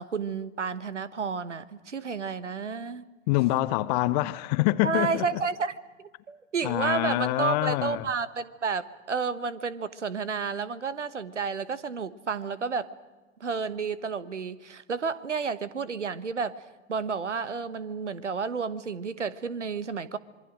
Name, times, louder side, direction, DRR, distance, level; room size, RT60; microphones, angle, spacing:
voice 1, 0.0-3.1 4.8-12.9 13.4-16.6 16.9-20.2, right 5 dB, 80° right, 1.3 m, -31 dB
voice 2, 3.3-5.3 6.6-8.1, left 18 dB, 35° left, 0.8 m, -25 dB
26.5 x 22.5 x 6.3 m
figure-of-eight pair, 105°, 35 cm